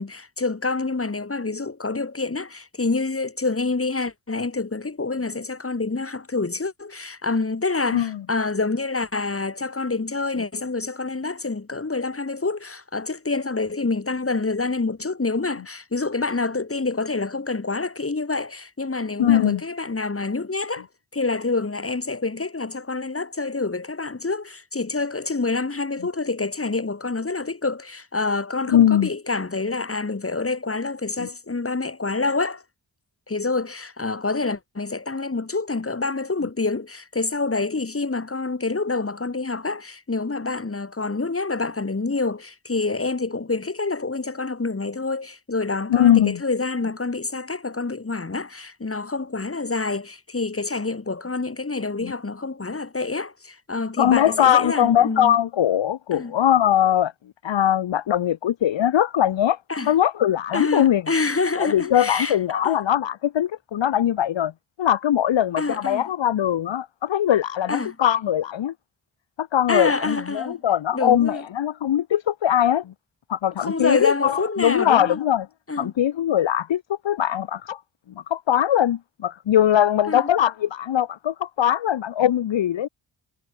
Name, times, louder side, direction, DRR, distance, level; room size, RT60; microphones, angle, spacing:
voice 1, 0.0-20.9 21.1-32.6 33.3-55.4 56.1-56.3 59.7-59.9 60.5-62.8 65.6-66.1 67.7-68.0 69.7-70.6 70.9-71.4 73.6-75.2 75.7-75.9 80.1-80.3, left 3 dB, 30° left, 4.6 m, -27 dB
voice 2, 19.2-19.6 28.7-29.1 31.2-31.3 45.9-46.4 52.0-52.1 54.0-57.1 57.4-59.6 59.9-61.0 61.6-64.5 64.8-68.7 69.4-72.9 73.3-75.5 75.8-77.8 78.3-82.9, left 10 dB, 70° left, 1.5 m, -21 dB
cardioid pair, 55°, 47 cm